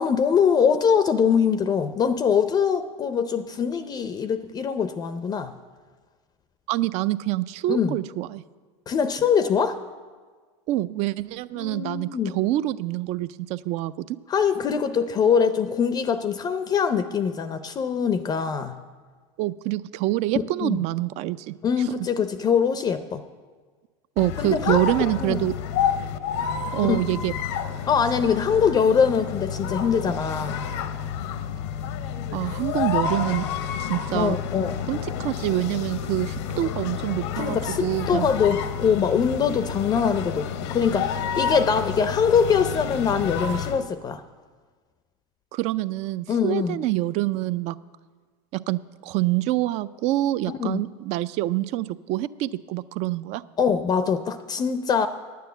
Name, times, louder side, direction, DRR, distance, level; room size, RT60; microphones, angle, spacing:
voice 1, 0.0-5.5 7.7-8.0 8.9-9.8 11.6-12.3 14.3-18.7 20.6-20.8 21.6-23.2 24.4-24.9 25.2-25.4 26.9-27.0 27.9-30.6 34.1-34.8 37.4-44.2 46.3-46.8 50.5-50.8 53.6-55.1, left 6 dB, 25° left, 11 dB, 0.5 m, -23 dB
voice 2, 6.7-8.4 10.7-14.2 19.4-21.5 24.2-25.5 26.7-27.3 32.3-33.5 33.8-34.4 34.9-38.3 45.5-47.8 48.5-53.4, right 15 dB, 50° right, 17 dB, 0.4 m, -26 dB
sound 1, 24.2-43.8, left 7 dB, 75° left, 0.7 m, -30 dB
9.5 x 9.3 x 6.8 m, 1.5 s
supercardioid pair, 120°, 14 cm